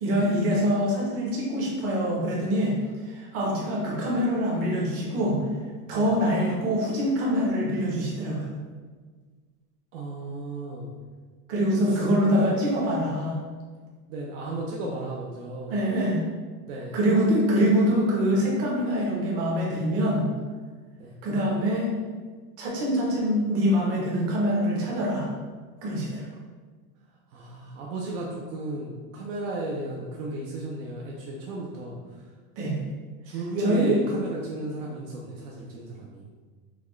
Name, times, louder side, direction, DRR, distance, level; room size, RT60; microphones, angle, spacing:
voice 1, 0.0-2.7 3.0-5.4 5.9-8.5 11.5-13.4 15.7-16.2 16.9-20.3 21.2-21.9 22.6-25.3 25.8-26.3 32.6-32.8 33.6-34.0, equal, 30° right, -4 dB, 0.9 m, -24 dB
voice 2, 9.9-10.9 11.9-12.0 14.1-15.7 16.7-17.0 21.0-21.1 27.3-31.9 33.2-36.2, right 2 dB, 55° right, -3 dB, 0.7 m, -34 dB
5.9 x 2.3 x 3.1 m, 1.5 s
supercardioid pair, 170°, 47 cm